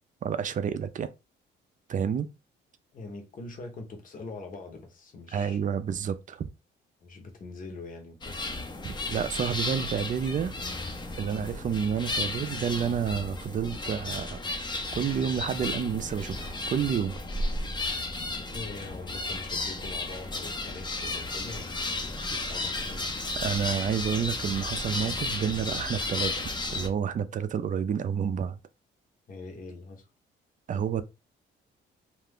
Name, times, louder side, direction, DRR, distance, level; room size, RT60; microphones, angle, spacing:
voice 1, 0.2-1.1 1.9-2.3 5.3-6.5 8.8-10.5 11.2-14.4 14.9-17.1 23.4-28.6 30.7-31.0, right 8 dB, 40° right, 0.4 m, -29 dB
voice 2, 2.9-5.8 7.0-8.4 11.3-11.5 18.2-23.1 29.3-30.0, left 3 dB, 45° left, 0.9 m, -43 dB
sound 1, 8.2-26.9, left 2 dB, 20° left, 0.6 m, -33 dB
2.5 x 2.3 x 3.5 m
cardioid pair, 90°, 20 cm